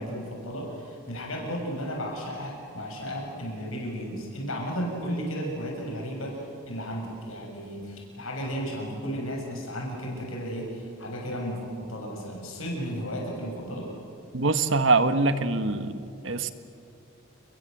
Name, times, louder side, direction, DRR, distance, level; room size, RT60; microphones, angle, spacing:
voice 1, 0.0-13.9, equal, 85° left, 0 dB, 7.2 m, -34 dB
voice 2, 14.3-15.9 16.2-16.5, right 3 dB, 65° right, 10 dB, 1.4 m, -23 dB
29.5 x 22.0 x 8.0 m, 2.6 s
head